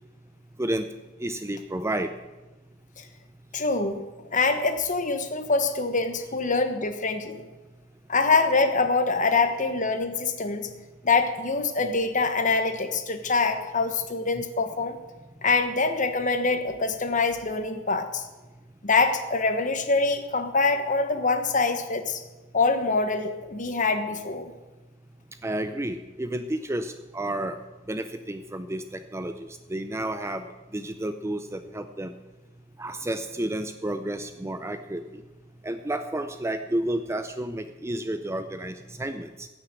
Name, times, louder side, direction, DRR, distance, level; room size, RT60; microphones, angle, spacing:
voice 1, 1.2-2.1 25.4-27.6 27.9-30.4 30.7-32.1 32.8-35.2 35.6-39.5, right 1 dB, 10° right, 9 dB, 0.5 m, -31 dB
voice 2, 3.5-4.0 4.3-7.4 8.1-10.7 11.0-15.0 15.4-18.2 18.8-22.2 22.5-24.5, left 3 dB, 35° left, 8 dB, 1.2 m, -24 dB
16.0 x 6.6 x 9.0 m, 1.1 s
head